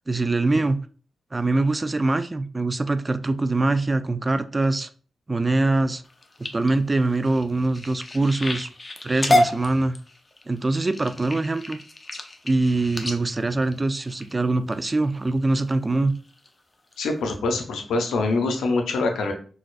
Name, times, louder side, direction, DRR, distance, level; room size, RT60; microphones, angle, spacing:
voice 1, 0.1-0.8 1.3-4.9 5.3-6.0 6.5-8.7 9.0-10.0 10.5-11.8 12.4-16.1, right 2 dB, 30° right, 11 dB, 0.3 m, -23 dB
sound 1, 6.0-14.7 15.3-15.7 16.1-16.5 16.9-17.0 17.3-17.4, left 1 dB, 35° left, 0.6 m, -29 dB
voice 2, 17.0-19.3, left 3 dB, 90° left, 4 dB, 0.6 m, -24 dB
4.0 x 2.3 x 2.4 m, 0.40 s
cardioid pair, 55°, 0 cm